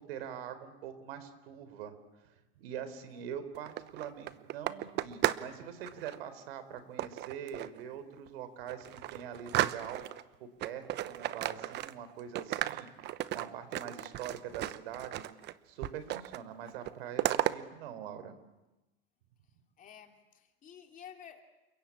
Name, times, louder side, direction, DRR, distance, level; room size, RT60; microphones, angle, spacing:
voice 1, 0.0-2.0 2.2-8.9 9.1-10.0 10.4-15.2 15.7-18.4, right 9 dB, 80° right, 11 dB, 4.1 m, -43 dB
sound 1, 3.5-5.5 5.8-6.2 7.0-7.8 8.3-8.4 8.7-10.2 10.6-12.1 12.4-15.5 15.8-16.4 16.7-17.5, right 14 dB, 35° right, 1.0 m, -34 dB
voice 2, 19.8-21.4, left 8 dB, 25° left, 5 dB, 2.8 m, -52 dB
29.0 x 22.5 x 8.7 m, 1.0 s
supercardioid pair, 145°, 29 cm